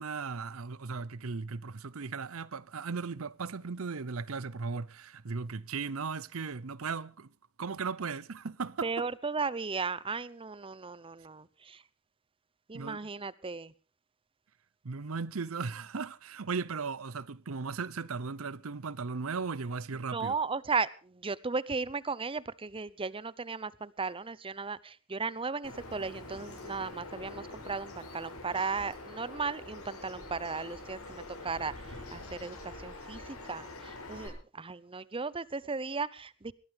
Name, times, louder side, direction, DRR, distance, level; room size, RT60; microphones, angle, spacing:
voice 1, 0.0-7.3 7.6-8.9 12.7-13.0 14.8-20.3, right 4 dB, 70° right, 0.7 m, -37 dB
voice 2, 8.8-11.8 12.7-13.7 20.1-36.5, right 4 dB, 25° right, 0.7 m, -36 dB
Bird vocalization bird call bird song, 25.6-34.3, left 2 dB, 90° left, 7.2 m, -45 dB
22.0 x 17.5 x 3.4 m
head